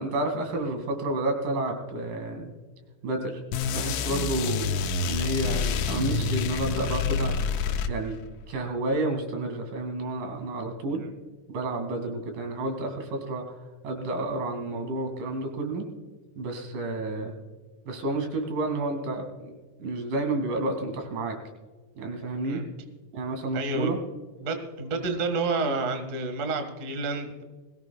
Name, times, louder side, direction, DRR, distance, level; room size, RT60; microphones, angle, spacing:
voice 1, 0.0-2.5 3.0-3.4 3.7-4.7 5.0-7.4 7.9-8.2 8.5-11.0 11.5-13.5 13.8-15.9 16.4-17.4 17.9-19.5 19.8-21.4 22.0-22.6 23.1-24.0, right 2 dB, 90° right, 4 dB, 3.9 m, -30 dB
sound 1, 3.5-8.3, left 5 dB, 90° left, 2.4 m, -28 dB
voice 2, 23.5-23.9 24.4-27.4, right 3 dB, 35° right, 6 dB, 1.4 m, -29 dB
21.0 x 17.5 x 2.3 m, 1.4 s
omnidirectional pair, 3.7 m